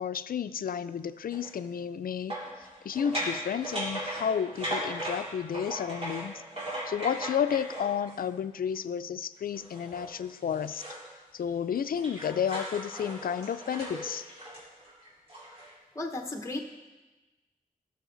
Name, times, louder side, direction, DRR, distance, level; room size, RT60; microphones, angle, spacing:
voice 1, 0.0-6.4 6.9-10.8 11.3-14.3, left 8 dB, 75° left, 13 dB, 0.4 m, -32 dB
sound 1, 1.3-1.5 2.3-8.3 9.5-11.1 11.5-15.7, equal, 40° right, 4.1 m, -37 dB
voice 2, 15.9-16.6, left 2 dB, 20° left, 3 dB, 1.0 m, -35 dB
17.5 x 6.9 x 3.9 m, 1.1 s
wide cardioid pair, 130°, 15 cm